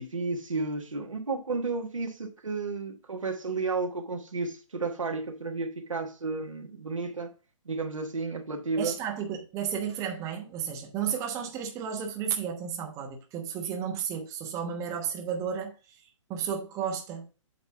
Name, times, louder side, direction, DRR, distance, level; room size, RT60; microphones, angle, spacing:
voice 1, 0.0-7.3 7.6-9.0, right 3 dB, 75° right, 1.3 m, -32 dB
voice 2, 8.8-16.0 16.3-17.3, right 8 dB, 20° right, 1.1 m, -33 dB
8.1 x 3.3 x 5.4 m
figure-of-eight pair, 125°, 17 cm